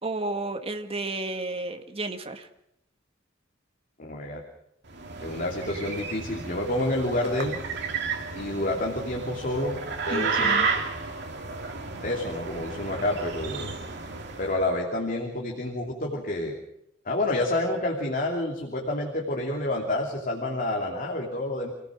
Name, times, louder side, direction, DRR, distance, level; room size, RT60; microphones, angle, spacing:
voice 1, 0.0-2.5 10.1-10.7, right 2 dB, 30° right, 6 dB, 1.8 m, -32 dB
voice 2, 4.0-4.4 5.2-7.6 8.3-9.8 10.1-10.8 12.0-13.7 14.4-16.5 17.0-21.7, left 1 dB, 45° left, 0 dB, 3.0 m, -29 dB
sound 1, 4.9-14.6, right 5 dB, 65° right, 3.0 m, -32 dB
28.0 x 17.5 x 6.3 m, 0.78 s
head